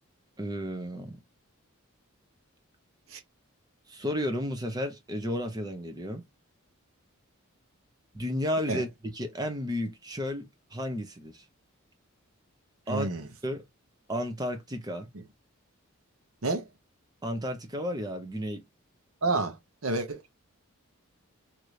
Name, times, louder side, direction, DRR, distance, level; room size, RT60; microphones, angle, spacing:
voice 1, 0.4-1.2 3.9-6.2 8.1-8.9 9.1-11.4 12.9-13.1 13.4-13.6 14.1-15.1 17.2-18.6, equal, 20° right, 0.6 m, -32 dB
voice 2, 12.9-13.3 15.1-15.2 16.4-16.7 19.2-19.6 19.8-20.2, right 3 dB, 70° right, 0.8 m, -29 dB
3.0 x 2.6 x 3.1 m
head